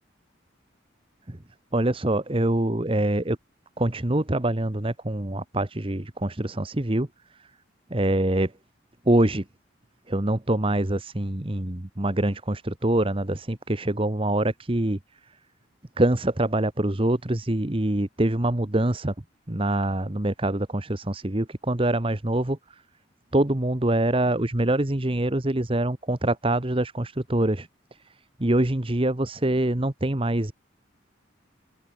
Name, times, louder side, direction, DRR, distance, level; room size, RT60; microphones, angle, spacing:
voice 1, 1.7-3.4 3.8-7.1 7.9-8.5 9.0-9.4 10.1-15.0 16.0-19.1 19.5-22.6 23.3-27.7 28.4-30.5, right 1 dB, 30° right, 1.2 m, -24 dB
open air
head